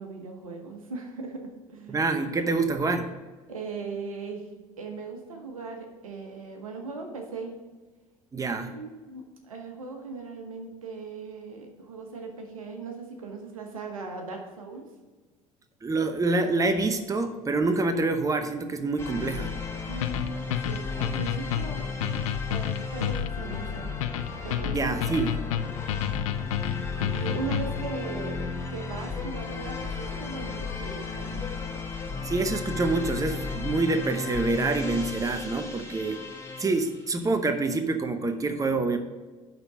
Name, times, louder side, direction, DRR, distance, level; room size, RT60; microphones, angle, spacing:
voice 1, 0.0-2.0 3.5-4.5 4.8-7.5 8.6-14.8 19.9-24.1 24.4-25.0 27.0-31.5, right 4 dB, 85° right, 4 dB, 1.2 m, -39 dB
voice 2, 1.9-3.1 8.3-8.8 15.8-19.5 24.6-25.3 32.2-36.2 36.6-39.0, right 3 dB, 20° right, 8 dB, 0.9 m, -26 dB
sound 1, 19.0-37.1, left 4 dB, 15° left, 1.7 m, -34 dB
sound 2, 20.0-27.9, left 11 dB, 75° left, 0.4 m, -30 dB
10.5 x 4.0 x 6.0 m, 1.3 s
figure-of-eight pair, 60°, 17 cm